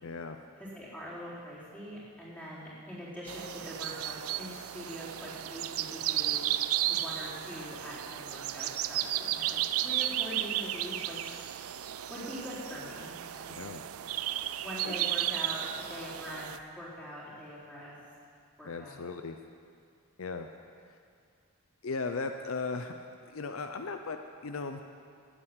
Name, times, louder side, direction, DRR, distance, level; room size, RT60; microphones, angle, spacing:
voice 1, 0.0-0.4 13.6-13.8 14.8-14.9 18.6-19.4 20.2-20.5 21.8-23.0 23.3-24.2 24.4-24.8, left 4 dB, 70° left, 6 dB, 0.6 m, -36 dB
voice 2, 0.6-6.5 6.9-11.3 12.1-13.1 13.4-13.7 14.6-18.0 18.6-19.0, equal, 10° left, -9 dB, 4.1 m, -43 dB
sound 1, 3.3-16.6, right 12 dB, 75° right, 0.4 m, -34 dB
12.5 x 8.9 x 8.1 m, 2.3 s
head